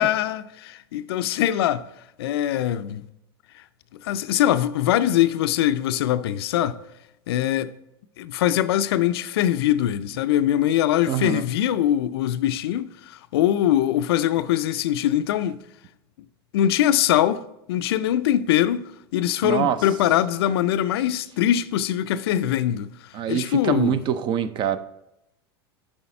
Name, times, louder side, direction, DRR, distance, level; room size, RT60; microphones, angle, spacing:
voice 1, 0.0-1.8 2.2-3.1 4.0-6.8 7.3-7.7 8.2-15.6 16.5-17.4 17.7-22.9 23.3-24.0, left 12 dB, 75° left, 0.4 m, -22 dB
voice 2, 11.1-11.4 19.4-19.8 23.1-24.8, right 9 dB, 35° right, 0.5 m, -24 dB
7.1 x 4.9 x 4.3 m
hypercardioid pair, 110°, 13 cm